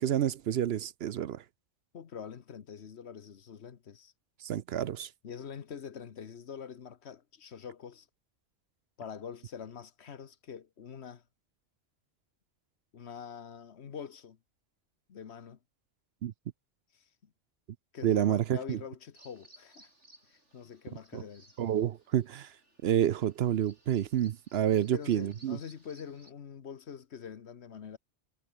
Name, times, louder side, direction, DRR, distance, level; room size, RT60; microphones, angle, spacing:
voice 1, 0.0-1.4 4.4-5.1 16.2-16.3 18.0-18.8 21.1-21.2 21.6-22.5 22.8-25.6, right 10 dB, 65° right, 0.8 m, -29 dB
voice 2, 1.9-4.1 5.2-8.1 9.0-11.2 12.9-14.4 15.1-15.6 16.9-17.3 17.9-19.9 20.3-21.5 24.9-28.0, left 7 dB, 70° left, 1.4 m, -45 dB
Bird vocalization bird call bird song, 19.1-26.3, right 1 dB, 85° right, 8.0 m, -62 dB
omnidirectional pair, 1.2 m